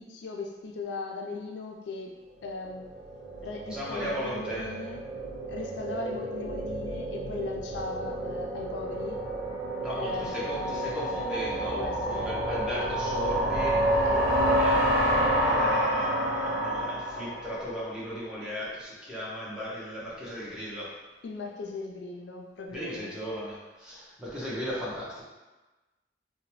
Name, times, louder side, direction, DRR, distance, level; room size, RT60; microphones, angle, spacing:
voice 1, 0.0-2.9 3.4-5.0 5.5-9.2 10.0-10.5 11.8-12.3 14.0-14.7 21.2-23.1, left 3 dB, 80° left, 1 dB, 0.4 m, -38 dB
sound 1, 2.7-17.9, right 1 dB, 70° right, 0.5 m, -29 dB
voice 2, 3.7-4.7 9.8-13.8 14.4-14.8 15.4-20.9 22.7-25.2, equal, 5° right, -7 dB, 0.7 m, -36 dB
2.8 x 2.1 x 2.9 m, 1.1 s
head